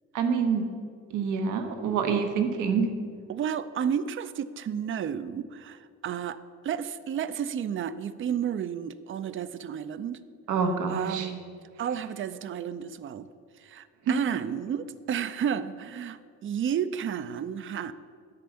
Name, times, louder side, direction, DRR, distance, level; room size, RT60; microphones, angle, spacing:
voice 1, 0.1-0.7 1.1-2.9 10.5-11.3 14.1-14.2, right 6 dB, 85° right, 6 dB, 1.0 m, -26 dB
voice 2, 3.3-10.2 10.9-11.4 11.8-13.3 13.6-17.9, right 8 dB, 45° right, 14 dB, 0.5 m, -32 dB
10.5 x 4.2 x 6.9 m, 2.1 s
cardioid pair, 90°, 30 cm